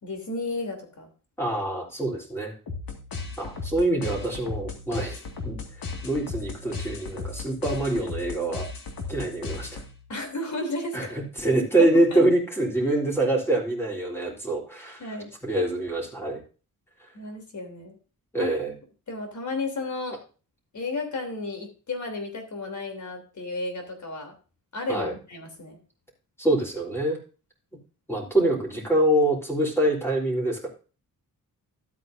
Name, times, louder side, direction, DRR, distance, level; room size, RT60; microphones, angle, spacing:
voice 1, 0.0-1.1 10.1-11.2 11.8-12.2 15.0-15.3 17.1-18.0 18.4-18.6 19.1-20.2 20.7-24.3 24.7-25.8, left 2 dB, 55° left, 4 dB, 3.3 m, -33 dB
voice 2, 1.4-2.5 3.4-5.6 6.0-8.7 9.1-9.8 10.9-15.0 15.4-16.4 18.3-18.7 24.9-25.1 26.4-27.2 28.1-30.7, right 1 dB, 5° left, -2 dB, 3.7 m, -25 dB
sound 1, 2.7-10.1, left 4 dB, 75° left, 2.1 m, -36 dB
13.0 x 8.5 x 2.7 m, 0.35 s
wide cardioid pair, 135°, 35 cm